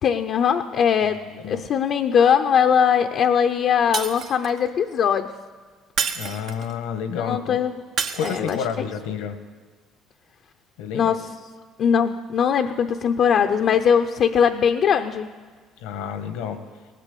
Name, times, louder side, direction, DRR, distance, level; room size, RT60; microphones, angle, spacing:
voice 1, 0.0-5.3 7.2-7.7 8.2-8.6 10.9-11.3 11.8-15.3, left 7 dB, 60° left, 6 dB, 0.7 m, -20 dB
voice 2, 1.1-1.6 6.1-7.6 8.1-9.4 10.8-11.2 15.8-16.6, left 7 dB, 85° left, 8 dB, 1.3 m, -30 dB
Shatter, 3.9-4.7 6.0-6.8 8.0-8.8, right 6 dB, 60° right, 1.1 m, -29 dB
18.5 x 8.4 x 8.4 m, 1.5 s
supercardioid pair, 85°, 0 cm